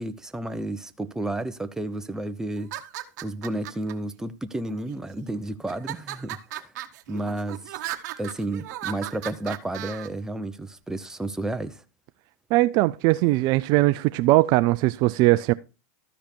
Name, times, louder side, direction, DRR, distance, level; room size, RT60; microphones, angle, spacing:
voice 1, 0.0-2.7 3.2-6.7 7.1-7.8 8.2-11.8, right 1 dB, 5° right, 0.8 m, -32 dB
sound 1, 2.6-3.9 4.7-5.2 5.7-10.1, right 14 dB, 65° right, 1.1 m, -36 dB
voice 2, 12.5-15.5, right 19 dB, 45° right, 0.4 m, -20 dB
13.0 x 5.1 x 4.4 m
hypercardioid pair, 110°, 10 cm